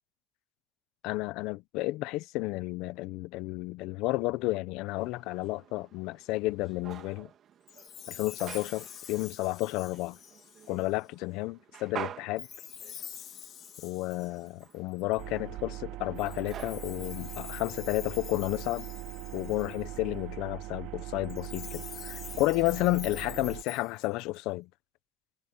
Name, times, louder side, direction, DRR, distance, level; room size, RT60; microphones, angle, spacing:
voice 1, 1.0-7.3 8.1-10.2 10.7-12.5 13.8-18.9 19.3-24.7, left 19 dB, 75° left, 0.8 m, -32 dB
sound 1, 4.9-18.6, right 9 dB, 45° right, 1.8 m, -48 dB
Chime, 7.7-11.0 12.4-15.2 16.2-20.0 21.2-24.4, left 9 dB, 45° left, 1.5 m, -46 dB
sound 2, 15.2-23.6, right 17 dB, 75° right, 2.2 m, -41 dB
cardioid pair, 145°, 0 cm